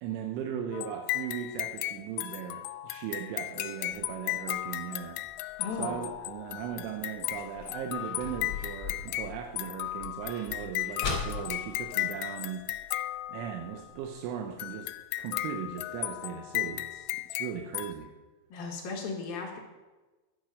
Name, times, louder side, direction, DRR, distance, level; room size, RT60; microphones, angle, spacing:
voice 1, 0.0-5.2 5.8-13.0 13.3-14.9 15.2-18.1, right 8 dB, 85° right, 4 dB, 3.2 m, -38 dB
sound 1, 0.7-13.8 14.6-17.9, left 16 dB, 90° left, 3.1 m, -35 dB
sound 2, 4.0-13.1 13.5-13.6 13.8-14.2 14.7-14.8 15.3-15.4 15.7-15.8 16.2-16.3, left 4 dB, 35° left, 1.2 m, -41 dB
voice 2, 5.6-6.0 18.5-19.6, left 4 dB, 60° left, 0 dB, 3.1 m, -36 dB
12.0 x 8.9 x 6.3 m, 1.2 s
omnidirectional pair, 5.5 m